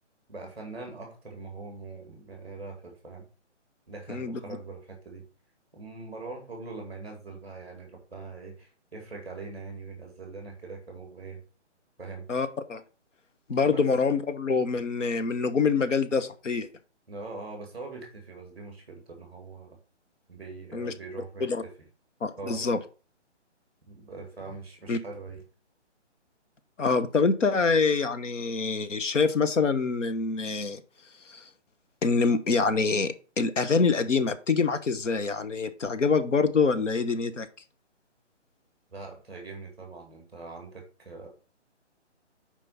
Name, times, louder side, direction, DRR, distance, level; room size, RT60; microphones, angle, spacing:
voice 1, 0.3-3.2 3.9-5.2 5.7-11.4 12.0-12.3 13.6-13.8 17.1-19.8 20.3-21.7 22.4-22.8 23.9-25.4 38.9-41.3, right 3 dB, ahead, 2 dB, 1.4 m, -42 dB
voice 2, 4.1-4.4 12.3-12.8 13.5-16.7 20.7-20.9 21.4-21.6 22.2-22.8 24.9-25.0 26.8-30.8 31.2-31.5 32.0-37.5, left 4 dB, 90° left, 10 dB, 1.2 m, -25 dB
5.8 x 5.0 x 5.5 m, 0.36 s
hypercardioid pair, 175°, 36 cm